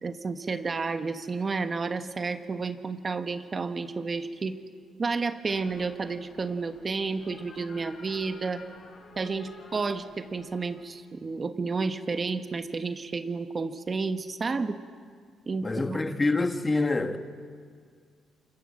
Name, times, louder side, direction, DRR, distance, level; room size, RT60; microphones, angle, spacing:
voice 1, 0.0-4.6 5.0-8.6 9.2-14.8 15.5-16.0, right 4 dB, 35° right, 1.3 m, -31 dB
sound 1, 5.4-10.7, left 3 dB, 55° left, 6.8 m, -51 dB
voice 2, 15.6-17.2, left 3 dB, 20° left, 1.5 m, -26 dB
26.0 x 22.0 x 7.6 m
cardioid pair, 90°, 0 cm